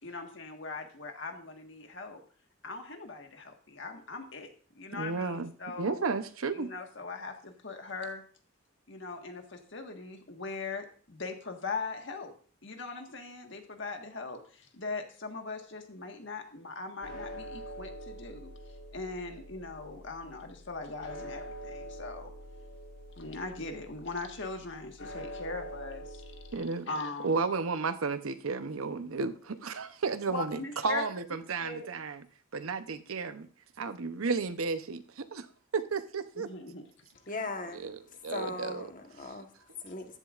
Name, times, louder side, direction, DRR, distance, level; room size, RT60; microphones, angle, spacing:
voice 1, 0.0-2.2 2.6-6.1 6.5-8.2 8.9-12.3 12.6-18.5 18.9-22.3 23.2-26.2 26.9-27.4 30.3-31.9 36.3-36.8, left 3 dB, 60° left, 1.6 m, -40 dB
voice 2, 4.9-6.7 26.5-26.9 27.2-32.2 32.5-33.5 33.8-35.5 35.7-36.5 37.8-38.0 38.2-38.9, right 4 dB, 85° right, 0.8 m, -33 dB
sound 1, 17.0-26.6, equal, 85° left, 4.2 m, -45 dB
voice 3, 37.3-40.2, left 3 dB, 40° left, 1.3 m, -39 dB
14.5 x 11.0 x 2.5 m
head